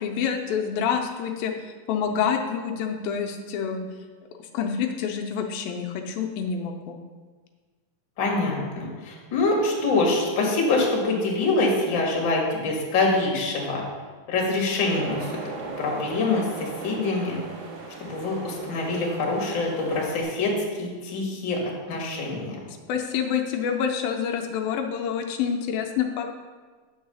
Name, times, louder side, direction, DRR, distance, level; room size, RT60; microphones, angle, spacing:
voice 1, 0.0-1.5 1.9-3.8 4.5-6.9 22.9-26.3, left 7 dB, 85° left, 3 dB, 2.4 m, -27 dB
voice 2, 8.2-13.8 14.3-15.3 15.8-17.4 18.0-20.5 20.8-21.6 21.9-22.6, left 3 dB, 40° left, -2 dB, 2.0 m, -25 dB
sound 1, 14.9-20.2, right 3 dB, 65° right, 2.4 m, -38 dB
8.7 x 4.7 x 6.9 m, 1.4 s
omnidirectional pair, 4.1 m